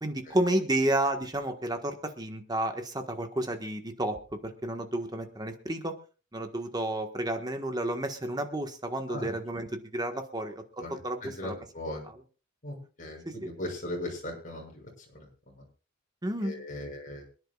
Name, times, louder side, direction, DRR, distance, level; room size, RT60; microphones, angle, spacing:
voice 1, 0.0-5.9 6.3-11.6 12.0-12.2 13.2-13.5 16.2-16.5, right 1 dB, 20° right, 5 dB, 1.4 m, -31 dB
voice 2, 11.4-12.1 12.6-14.8 15.1-15.2 16.4-17.2, left 1 dB, 40° left, -1 dB, 6.6 m, -38 dB
26.5 x 10.5 x 2.4 m, 0.35 s
head